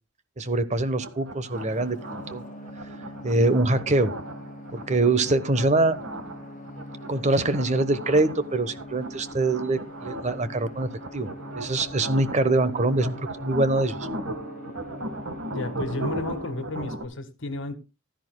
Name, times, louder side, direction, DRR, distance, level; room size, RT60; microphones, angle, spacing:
voice 1, 0.4-2.4 3.2-4.1 4.7-6.0 7.1-11.3 11.6-13.9, right 2 dB, 35° right, 1.0 m, -24 dB
sound 1, 1.0-17.0, right 1 dB, 70° right, 1.6 m, -37 dB
sound 2, 1.5-16.4, left 1 dB, 40° left, 1.2 m, -43 dB
voice 2, 15.5-17.8, left 2 dB, 60° left, 1.7 m, -32 dB
15.5 x 13.0 x 2.2 m
head